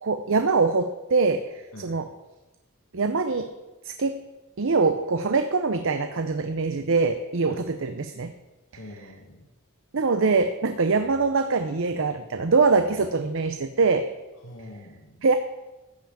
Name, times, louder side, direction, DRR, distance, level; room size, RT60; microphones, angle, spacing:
voice 1, 0.0-2.1 2.9-3.5 3.8-4.2 4.6-8.3 9.9-14.1 15.2-15.3, right 4 dB, 65° right, 8 dB, 0.7 m, -23 dB
voice 2, 8.7-9.5 14.4-15.2, left 1 dB, 75° left, -1 dB, 1.9 m, -44 dB
14.0 x 5.8 x 8.7 m, 1.1 s
head